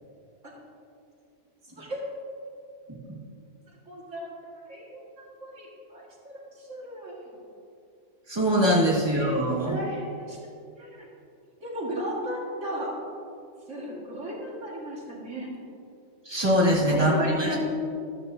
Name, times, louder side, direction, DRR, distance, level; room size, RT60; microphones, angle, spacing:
voice 1, 3.9-4.3 4.7-7.1 9.2-10.4 10.8-11.1 11.6-12.9 13.7-15.5 16.6-17.6, right 1 dB, 80° right, -4 dB, 2.3 m, -35 dB
voice 2, 8.3-9.8 16.3-17.6, equal, 20° right, -4 dB, 1.9 m, -23 dB
13.5 x 12.0 x 2.7 m, 2.5 s
omnidirectional pair, 1.3 m